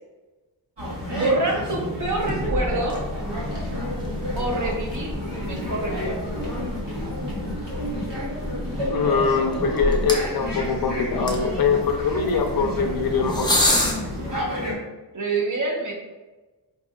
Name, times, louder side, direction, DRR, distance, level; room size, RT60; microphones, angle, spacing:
sound 1, 0.8-14.7, left 1 dB, 85° right, 1.3 m, -30 dB
voice 1, 1.1-3.0 4.4-6.1 15.1-15.9, right 2 dB, 45° right, 0 dB, 0.8 m, -26 dB
sound 2, 2.0-13.9, left 1 dB, 10° left, 0.5 m, -30 dB
sound 3, 2.5-4.3, left 1 dB, 25° right, 1.2 m, -34 dB
voice 2, 8.9-13.5, left 5 dB, 60° left, 5 dB, 0.5 m, -23 dB
4.8 x 2.7 x 2.3 m, 1.2 s
wide cardioid pair, 135°, 41 cm